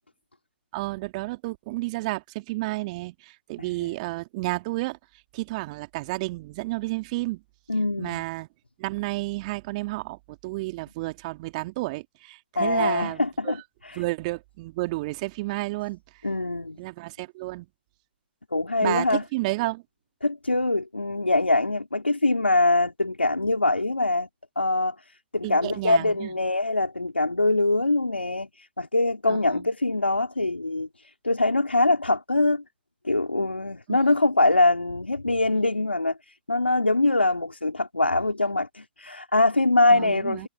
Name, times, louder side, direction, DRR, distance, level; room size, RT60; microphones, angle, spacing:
voice 1, 0.7-5.0 5.3-7.4 8.0-8.5 8.8-13.6 13.9-16.0 16.8-17.7 18.8-19.8 25.4-26.3 29.3-29.6 33.9-34.0 39.9-40.5, right 21 dB, 40° right, 2.7 m, -31 dB
voice 2, 3.6-3.9 7.7-8.2 12.5-14.0 16.2-16.8 18.5-19.2 20.2-24.3 24.6-25.0 25.3-32.6 33.0-40.5, left 2 dB, 90° left, 4.7 m, -23 dB
figure-of-eight pair, 120°, 6 cm